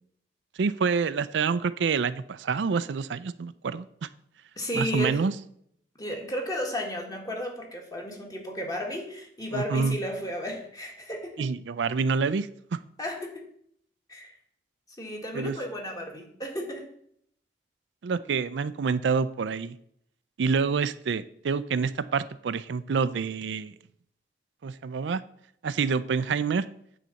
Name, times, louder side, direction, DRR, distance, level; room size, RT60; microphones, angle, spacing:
voice 1, 0.6-4.1 4.7-5.3 9.5-10.0 11.4-12.8 15.3-15.6 18.0-19.8 20.4-23.7 24.6-25.2 25.6-26.7, right 5 dB, 75° right, 14 dB, 0.4 m, -27 dB
voice 2, 4.5-5.2 6.0-11.5 13.0-13.5 14.1-14.4 15.0-16.9, equal, 20° left, 1 dB, 1.8 m, -33 dB
9.2 x 4.0 x 7.0 m, 0.68 s
head